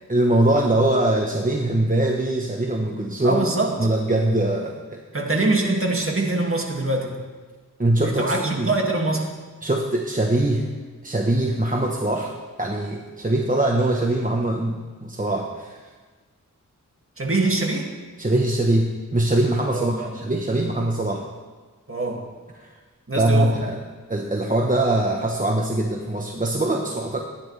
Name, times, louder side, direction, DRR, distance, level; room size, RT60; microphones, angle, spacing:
voice 1, 0.1-3.5 3.8-5.0 7.8-8.7 9.6-10.7 11.0-15.9 18.2-21.2 22.6-22.7 23.2-23.8 24.1-27.2, right 1 dB, 25° right, 1 dB, 1.1 m, -22 dB
voice 2, 3.2-3.7 5.1-7.2 8.0-9.3 17.2-17.9 19.7-20.1 21.9-22.2 23.1-23.6, right 2 dB, 40° right, 0 dB, 2.3 m, -23 dB
21.5 x 10.0 x 3.4 m, 1.4 s
wide cardioid pair, 65°, 32 cm